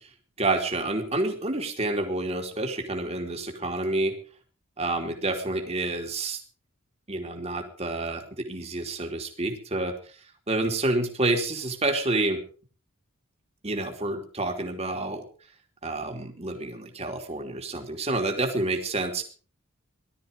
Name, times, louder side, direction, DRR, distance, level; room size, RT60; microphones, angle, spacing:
voice 1, 0.4-4.1 4.8-6.4 7.1-9.9 10.5-12.4 13.6-15.2 15.8-19.2, right 2 dB, 30° right, 4 dB, 2.9 m, -28 dB
18.5 x 13.0 x 5.2 m, 0.41 s
head